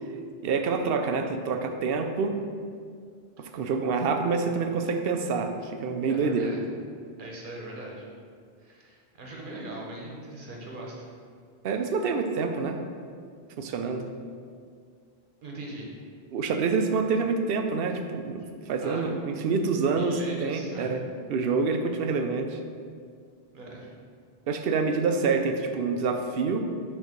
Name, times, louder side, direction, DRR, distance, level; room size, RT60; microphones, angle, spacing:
voice 1, 0.4-2.4 3.4-6.5 11.6-12.8 13.6-14.0 16.3-21.0 21.3-22.6 24.5-26.6, right 4 dB, 70° right, 6 dB, 0.7 m, -27 dB
voice 2, 6.1-6.6 7.2-8.1 8.6-11.1 11.8-11.9 15.4-15.9 18.8-19.1 19.8-21.0 23.5-24.0, right 1 dB, 55° right, -2 dB, 1.2 m, -40 dB
6.5 x 3.2 x 5.0 m, 2.1 s
omnidirectional pair, 1.1 m